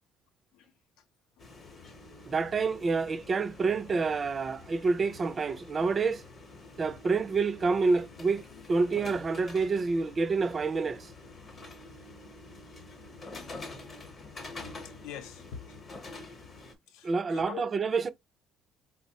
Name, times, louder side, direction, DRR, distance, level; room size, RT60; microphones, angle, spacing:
sound 1, 1.4-16.7, left 3 dB, 30° left, 0.8 m, -47 dB
voice 1, 2.3-6.2 6.8-8.4 8.7-11.1 17.0-18.1, right 4 dB, 30° right, 0.4 m, -28 dB
voice 2, 14.7-15.8 16.9-17.7, left 9 dB, 80° left, 0.6 m, -44 dB
4.2 x 2.0 x 2.7 m
cardioid pair, 125°, 0 cm